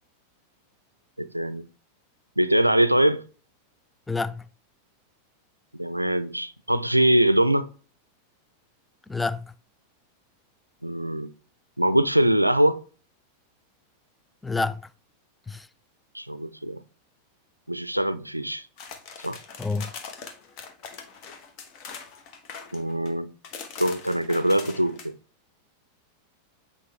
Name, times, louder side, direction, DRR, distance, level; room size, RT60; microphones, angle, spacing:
voice 1, 1.2-1.6 2.4-3.2 5.7-7.7 10.8-11.3 11.8-12.8 16.1-16.8 17.7-18.6 19.2-19.4 22.7-23.3 23.8-25.1, right 1 dB, 90° right, 0.4 m, -23 dB
voice 2, 4.1-4.5 9.1-9.5 14.4-14.9 15.5-15.7 19.6-19.9, left 3 dB, 10° left, 0.3 m, -28 dB
sound 1, 18.8-23.1 23.4-25.1, left 5 dB, 40° left, 1.1 m, -41 dB
8.2 x 4.9 x 3.3 m
figure-of-eight pair, 90°, 0 cm